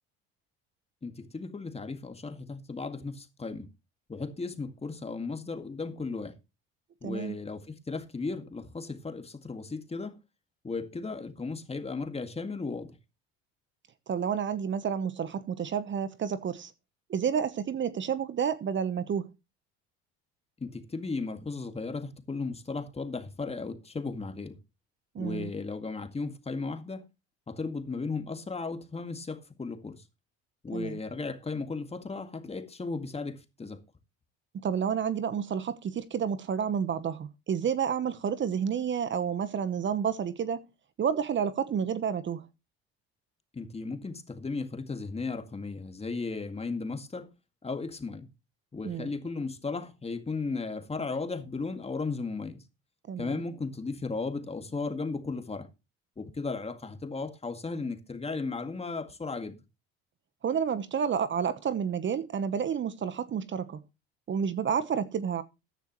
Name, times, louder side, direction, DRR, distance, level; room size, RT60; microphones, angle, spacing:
voice 1, 1.0-3.7 4.1-6.3 7.0-10.2 10.6-13.0 20.6-24.6 25.2-27.0 27.5-30.0 30.6-33.8 43.5-47.3 47.6-48.3 48.7-52.6 53.2-55.7 56.2-59.6, left 4 dB, 20° left, 2.0 m, -35 dB
voice 2, 7.0-7.4 14.1-16.7 17.1-19.3 25.1-25.5 30.7-31.0 34.5-40.6 41.0-42.4 48.8-49.1 53.1-53.3 60.4-63.8 64.3-65.4, right 7 dB, 40° right, 1.1 m, -30 dB
14.0 x 10.0 x 3.1 m
supercardioid pair, 80°, 29 cm